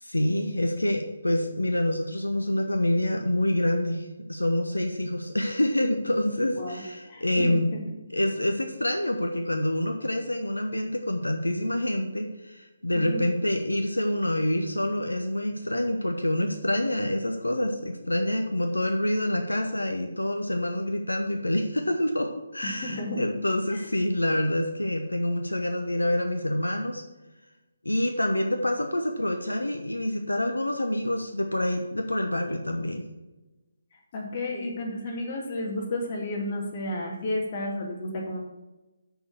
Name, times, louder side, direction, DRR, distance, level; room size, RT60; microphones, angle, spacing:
voice 1, 0.0-7.7 8.1-27.0 27.8-33.0, left 1 dB, 80° left, 4 dB, 0.9 m, -27 dB
voice 2, 6.6-8.0 12.9-13.2 22.6-23.2 23.7-23.9 33.9-38.4, left 1 dB, 35° left, 0 dB, 2.1 m, -32 dB
6.9 x 6.2 x 6.3 m, 1.1 s
figure-of-eight pair, 145°, 0 cm